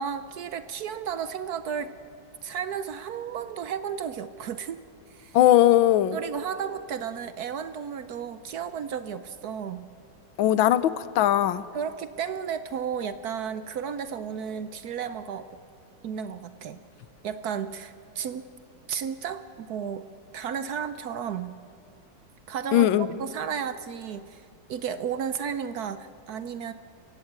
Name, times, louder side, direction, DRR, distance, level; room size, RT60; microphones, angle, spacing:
voice 1, 0.0-1.9 2.4-4.8 5.1-5.4 6.1-9.9 11.7-15.5 16.0-16.8 17.2-18.5 18.9-20.1 20.3-21.5 22.5-24.4 24.7-26.7, right 7 dB, 65° right, 12 dB, 1.1 m, -33 dB
voice 2, 5.3-6.2 10.4-11.6 22.7-23.1, left 13 dB, 90° left, 15 dB, 1.5 m, -19 dB
30.0 x 16.5 x 8.1 m, 2.7 s
omnidirectional pair, 2.1 m